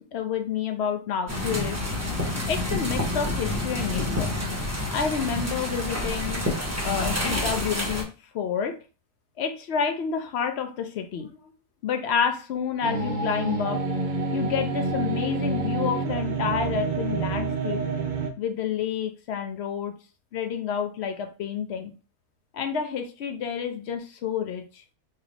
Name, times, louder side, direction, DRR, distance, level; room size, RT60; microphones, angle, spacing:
voice 1, 0.1-1.8 2.5-4.3 4.9-6.4 6.8-8.1 8.3-8.8 9.4-11.3 11.8-13.8 14.3-17.8 18.4-19.9 20.3-21.9 22.5-24.8, left 7 dB, 65° left, 7 dB, 0.6 m, -29 dB
sound 1, 1.3-8.0, left 1 dB, 15° right, 0.6 m, -28 dB
sound 2, 12.8-18.3, right 3 dB, 60° right, 0.5 m, -28 dB
3.2 x 2.8 x 3.9 m, 0.34 s
omnidirectional pair, 1.6 m